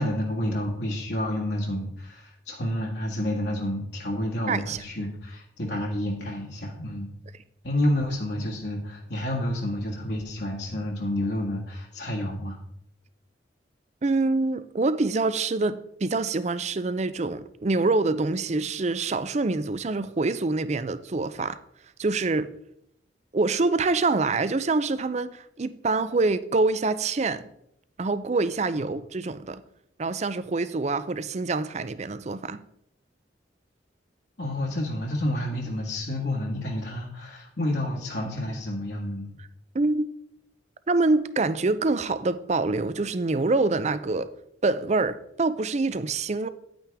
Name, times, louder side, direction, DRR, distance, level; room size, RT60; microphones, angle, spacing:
voice 1, 0.0-7.1 7.6-12.6 34.4-39.4, left 1 dB, 70° left, -3 dB, 1.7 m, -29 dB
voice 2, 4.5-4.8 14.0-21.6 22.0-22.5 23.3-27.4 28.0-29.6 30.0-32.6 39.7-40.1 40.9-44.3 44.6-46.5, right 3 dB, 40° right, 14 dB, 0.5 m, -25 dB
9.9 x 8.9 x 3.5 m, 0.74 s
head